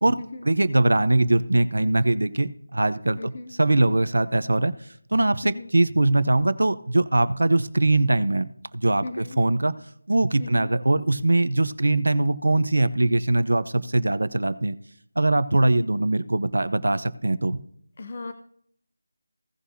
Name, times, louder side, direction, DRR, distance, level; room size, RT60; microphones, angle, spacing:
voice 1, 0.4-3.3 3.6-4.7 5.1-9.7 10.1-14.7 15.2-17.6, right 2 dB, 85° right, 13 dB, 0.8 m, -22 dB
voice 2, 3.2-3.5 5.4-5.7 9.0-9.4 10.4-10.7 18.0-18.3, left 3 dB, 30° left, 8 dB, 0.5 m, -36 dB
17.0 x 6.2 x 2.8 m, 0.66 s
figure-of-eight pair, 180°, 0 cm